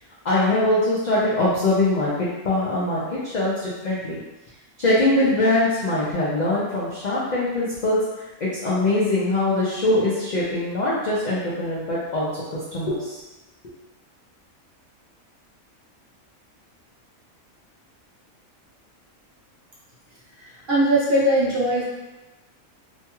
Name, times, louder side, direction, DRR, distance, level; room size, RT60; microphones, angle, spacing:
voice 1, 0.2-4.2 4.8-12.4 12.7-13.2, left 2 dB, 65° left, -7 dB, 0.4 m, -22 dB
voice 2, 20.4-21.8, right 1 dB, 50° right, -8 dB, 0.8 m, -20 dB
2.7 x 2.3 x 2.9 m, 1.1 s
omnidirectional pair, 1.4 m